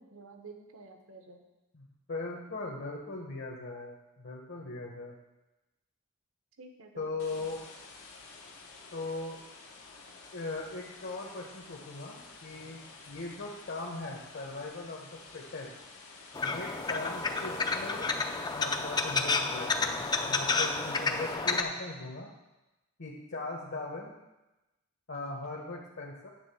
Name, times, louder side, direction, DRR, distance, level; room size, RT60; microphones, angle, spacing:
voice 1, 0.0-1.4 6.6-7.5, right 3 dB, 70° right, 4 dB, 1.1 m, -51 dB
voice 2, 1.7-5.2 7.0-7.6 8.9-9.4 10.3-12.8 13.1-15.7 16.4-18.1 18.5-20.0 20.2-22.3 23.0-24.1 25.1-26.3, left 3 dB, 60° left, -1 dB, 1.2 m, -39 dB
sound 1, 7.2-21.3, left 4 dB, 85° left, 1.3 m, -51 dB
sound 2, 16.3-21.6, left 4 dB, 20° left, 0.5 m, -30 dB
9.5 x 3.7 x 6.9 m, 1.0 s
head